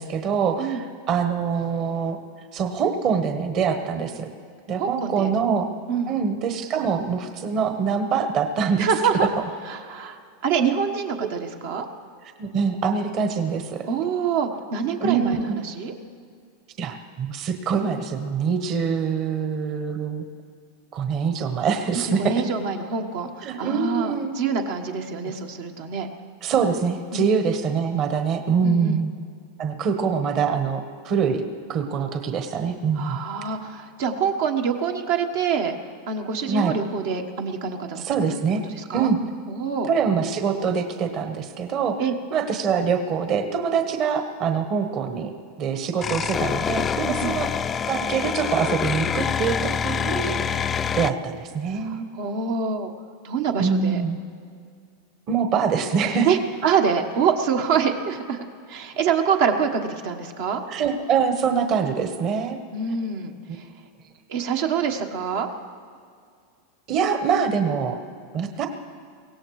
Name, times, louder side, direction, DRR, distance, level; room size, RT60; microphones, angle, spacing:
voice 1, 0.0-2.2 2.5-4.3 4.7-5.6 6.1-8.9 11.2-11.3 12.4-13.9 15.0-15.6 16.8-20.2 20.9-22.3 23.4-24.3 26.4-29.1 29.6-31.4 31.7-33.2 36.5-36.7 38.0-38.6 38.9-39.2 39.9-42.0 42.3-45.3 45.6-47.5 47.9-50.6 50.9-52.1 53.6-54.2 55.3-56.3 60.7-62.6 63.5-63.6 66.9-68.0 68.3-68.7, right 6 dB, 40° right, 6 dB, 1.2 m, -24 dB
voice 2, 4.8-5.3 5.9-6.2 8.8-9.3 9.7-11.9 13.9-15.9 21.9-26.1 27.1-27.3 28.6-29.0 32.9-35.7 36.1-38.0 38.7-39.1 39.5-39.9 42.0-42.1 47.0-47.3 51.7-52.9 53.2-54.0 56.2-58.4 58.7-60.6 62.7-63.6 64.3-65.5, right 6 dB, 70° right, 3 dB, 1.3 m, -25 dB
sound 1, 46.0-51.1, left 7 dB, 25° left, 0.4 m, -26 dB
23.0 x 17.0 x 3.2 m, 2.2 s
supercardioid pair, 125°, 0 cm